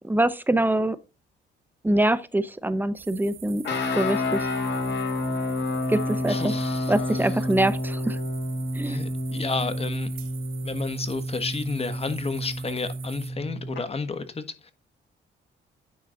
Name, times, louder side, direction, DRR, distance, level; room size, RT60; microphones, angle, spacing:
voice 1, 0.0-1.0 1.8-3.6 4.0-4.5 5.9-6.5 6.9-8.2 8.7-9.0, right 1 dB, 10° right, 0.7 m, -24 dB
sound 1, 2.9-13.3, right 10 dB, 80° right, 1.2 m, -46 dB
sound 2, 3.6-13.8, left 1 dB, 60° left, 2.1 m, -29 dB
voice 2, 6.3-6.9 8.8-10.1 10.6-14.7, left 4 dB, 30° left, 1.2 m, -31 dB
9.8 x 3.9 x 3.9 m
cardioid pair, 90°, 20 cm